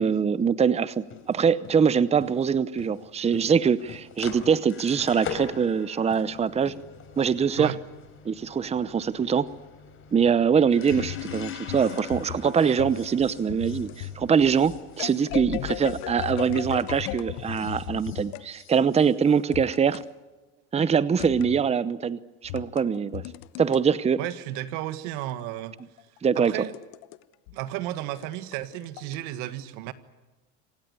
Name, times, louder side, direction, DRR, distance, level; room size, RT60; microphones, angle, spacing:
voice 1, 0.0-6.7 7.2-7.7 8.2-9.5 10.1-20.0 20.7-23.2 23.6-24.2 26.2-26.5, right 6 dB, 20° right, 17 dB, 0.8 m, -23 dB
sound 1, 0.9-17.1 17.4-20.0, left 6 dB, 45° left, 4.8 m, -44 dB
sound 2, 10.9-18.5 19.5-20.1 21.2-21.6 22.4-23.8 25.2-27.2 27.5-27.6 28.2-29.2, left 15 dB, 85° left, 1.0 m, -36 dB
voice 2, 24.2-25.8 26.4-26.7 27.5-29.9, right 14 dB, 80° right, 13 dB, 1.8 m, -33 dB
27.5 x 17.5 x 9.9 m, 1.1 s
cardioid pair, 115°, 30 cm